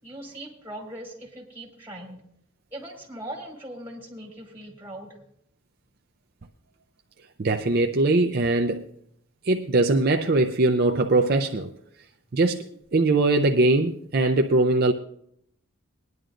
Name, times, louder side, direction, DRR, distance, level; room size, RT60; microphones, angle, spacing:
voice 1, 0.0-2.2 2.7-5.1, right 1 dB, 10° right, 3.0 m, -40 dB
voice 2, 7.4-8.9 9.4-11.7 12.3-12.7 12.9-14.9, right 2 dB, 50° right, 0.5 m, -21 dB
20.5 x 10.5 x 2.5 m
head